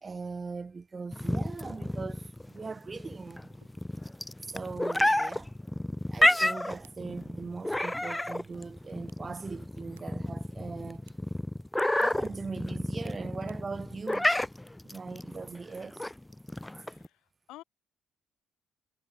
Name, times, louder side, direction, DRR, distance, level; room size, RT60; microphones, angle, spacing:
voice 1, 0.0-3.5 4.5-5.5 6.1-11.0 12.0-14.3 14.8-16.0, right 4 dB, 35° right, 0.8 m, -40 dB
sound 1, 1.1-17.1, left 1 dB, 10° left, 0.6 m, -30 dB
sound 2, 3.5-16.4, right 19 dB, 85° right, 5.0 m, -70 dB
voice 2, 16.8-17.2 17.5-17.6, left 17 dB, 70° left, 2.8 m, -49 dB
hypercardioid pair, 50°, 0 cm